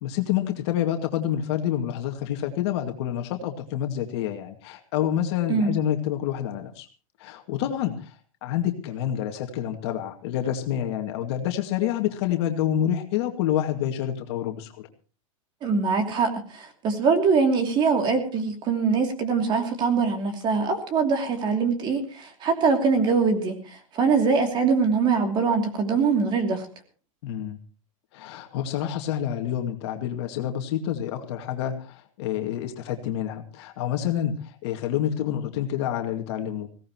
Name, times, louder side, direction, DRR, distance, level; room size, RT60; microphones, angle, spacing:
voice 1, 0.0-6.9 7.2-8.1 8.4-14.9 27.2-27.6 28.1-36.7, left 10 dB, 50° left, 4 dB, 2.2 m, -28 dB
voice 2, 15.6-23.6 23.9-26.7, right 5 dB, 25° right, 5 dB, 2.9 m, -23 dB
21.0 x 17.0 x 3.1 m, 0.37 s
supercardioid pair, 160°, 17 cm